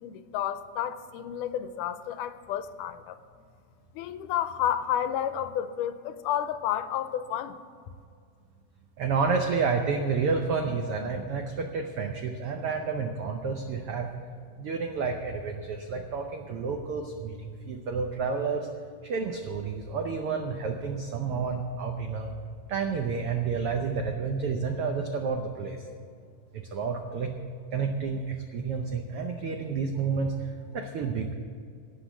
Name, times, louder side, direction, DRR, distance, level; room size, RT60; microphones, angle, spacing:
voice 1, 0.0-3.2 4.0-7.6, left 10 dB, 85° left, 11 dB, 2.2 m, -31 dB
voice 2, 9.0-14.1 14.6-18.7 19.0-22.3 22.7-25.8 26.5-27.3 27.7-31.3, right 5 dB, 75° right, 4 dB, 1.3 m, -30 dB
17.5 x 6.1 x 8.1 m, 2.3 s
omnidirectional pair, 3.7 m